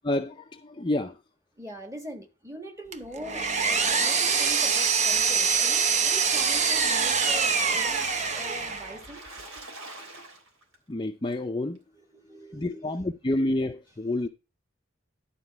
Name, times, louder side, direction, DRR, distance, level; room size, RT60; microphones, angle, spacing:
voice 1, 0.1-1.2 10.9-11.8 12.5-14.3, left 1 dB, 20° left, 0.5 m, -29 dB
voice 2, 1.6-9.2 11.9-13.2, equal, 15° right, 1.4 m, -43 dB
Power tool, 2.9-9.0, right 5 dB, 35° right, 0.8 m, -24 dB
Water / Splash splatter, 6.9-10.8 11.3-11.4 11.7-11.8, right 2 dB, 75° right, 3.1 m, -43 dB
11.5 x 4.3 x 7.1 m
head